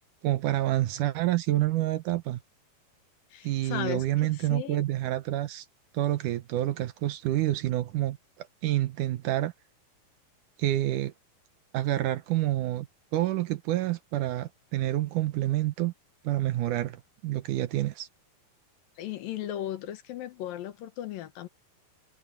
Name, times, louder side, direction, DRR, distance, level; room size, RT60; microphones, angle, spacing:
voice 1, 0.2-2.4 3.4-5.7 5.9-9.5 10.6-11.1 11.7-12.9 13.1-15.9 16.2-18.1, right 15 dB, 70° right, 2.0 m, -28 dB
voice 2, 3.3-4.1 4.3-4.8 19.0-21.5, left 12 dB, 70° left, 2.8 m, -36 dB
omnidirectional pair, 4.5 m